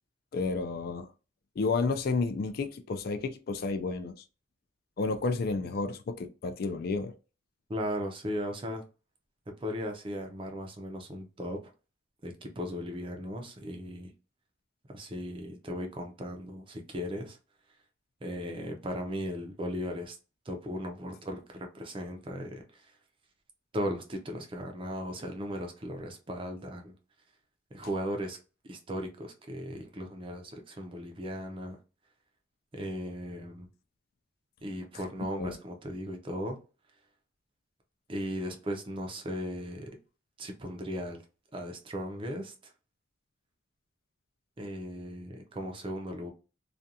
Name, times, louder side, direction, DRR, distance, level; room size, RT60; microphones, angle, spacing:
voice 1, 0.3-1.1 1.6-4.1 5.0-7.1 35.4-35.5, left 4 dB, 50° left, 0.3 m, -31 dB
voice 2, 7.7-8.8 9.6-11.6 12.2-14.1 14.9-17.4 18.2-20.2 20.5-22.9 23.7-26.9 27.7-28.4 28.6-31.8 32.7-33.7 34.6-36.6 38.1-39.9 40.4-41.2 41.5-42.7 44.6-46.3, equal, 25° right, 0.5 m, -37 dB
2.4 x 2.2 x 2.7 m
head